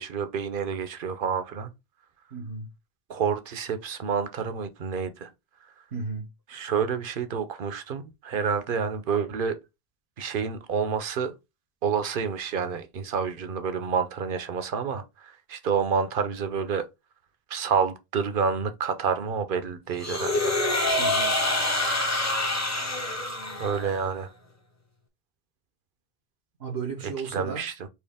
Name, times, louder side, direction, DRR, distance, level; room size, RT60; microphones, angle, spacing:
voice 1, 0.0-1.7 3.1-5.3 6.5-9.6 10.2-11.4 11.8-16.9 17.5-20.6 23.6-24.3 27.0-27.7, right 6 dB, 60° right, 0.9 m, -28 dB
voice 2, 2.3-2.7 5.9-6.3 21.0-21.3 26.6-27.7, right 4 dB, 85° right, 1.3 m, -34 dB
sound 1, 20.0-24.0, left 1 dB, 15° left, 0.8 m, -26 dB
4.5 x 2.8 x 3.5 m
omnidirectional pair, 1.0 m